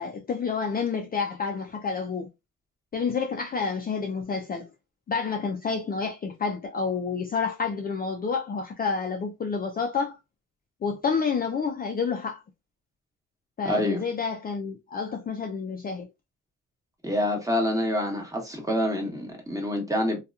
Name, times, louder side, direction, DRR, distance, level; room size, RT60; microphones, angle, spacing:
voice 1, 0.0-2.3 2.9-4.7 5.1-10.2 10.8-12.4 13.6-16.1, left 5 dB, 30° left, 0.4 m, -29 dB
voice 2, 13.6-14.0 17.0-20.2, left 1 dB, 10° right, 1.0 m, -27 dB
2.8 x 2.3 x 2.3 m
cardioid pair, 90°, 30 cm